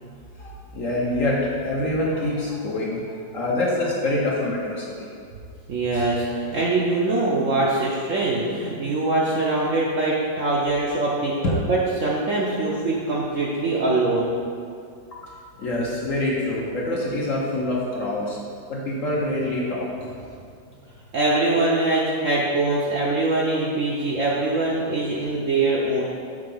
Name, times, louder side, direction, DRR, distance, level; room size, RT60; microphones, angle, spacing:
voice 1, 0.0-5.1 15.1-15.2 15.6-18.4 18.7-20.1, left 1 dB, 55° left, -4 dB, 1.1 m, -26 dB
voice 2, 5.7-14.3 21.1-26.0, right 2 dB, 60° right, -5 dB, 0.9 m, -23 dB
6.7 x 4.0 x 5.4 m, 2.3 s
omnidirectional pair, 2.0 m